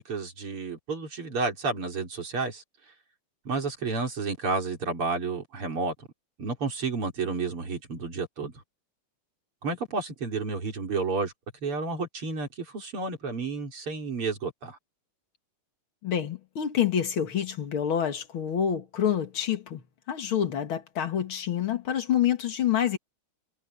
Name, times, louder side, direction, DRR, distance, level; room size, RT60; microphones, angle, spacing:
voice 1, 0.0-2.6 3.4-5.9 6.4-8.5 9.6-11.3 11.6-14.8, right 4 dB, 85° right, 4.8 m, -31 dB
voice 2, 16.0-23.0, left 9 dB, 70° left, 2.7 m, -27 dB
omnidirectional pair, 2.4 m